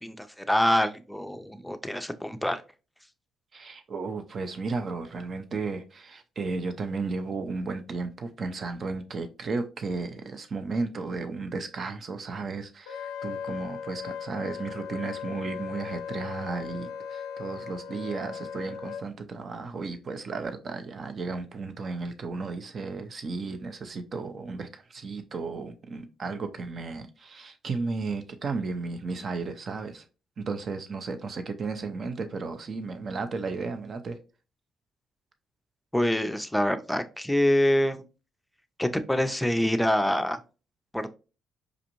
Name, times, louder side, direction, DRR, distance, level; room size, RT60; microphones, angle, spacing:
voice 1, 0.0-2.6 35.9-38.0 38.8-40.4 40.9-41.1, left 1 dB, 5° left, 0.5 m, -25 dB
voice 2, 3.5-30.1 30.4-34.2, right 4 dB, 50° right, 0.6 m, -34 dB
Wind instrument woodwind instrument, 12.9-19.0, left 7 dB, 85° left, 0.3 m, -37 dB
4.9 x 2.5 x 2.9 m
hypercardioid pair, 55°, 0 cm